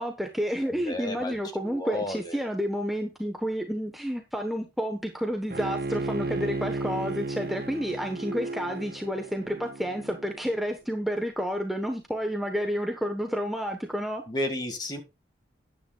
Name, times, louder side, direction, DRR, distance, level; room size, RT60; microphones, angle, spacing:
voice 1, 0.0-14.2, equal, ahead, 3 dB, 1.0 m, -30 dB
voice 2, 0.7-2.4 14.3-15.0, left 1 dB, 20° left, 7 dB, 1.8 m, -33 dB
Bowed string instrument, 5.5-10.6, right 2 dB, 55° right, 0.6 m, -34 dB
13.5 x 10.0 x 2.3 m, 0.25 s
head